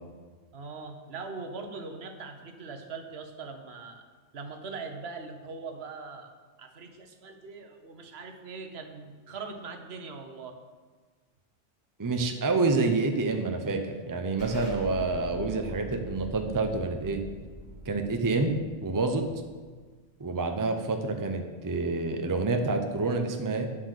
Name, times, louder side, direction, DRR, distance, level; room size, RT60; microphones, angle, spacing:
voice 1, 0.5-4.0 4.3-6.3 6.6-10.5, right 4 dB, 60° right, 5 dB, 1.3 m, -41 dB
voice 2, 12.0-17.2 17.9-18.5 18.8-19.2 20.2-23.7, right 3 dB, 20° right, 5 dB, 0.7 m, -28 dB
Explosion, 14.4-19.8, equal, 5° left, 3.6 m, -43 dB
9.2 x 8.0 x 6.5 m, 1.5 s
omnidirectional pair, 1.3 m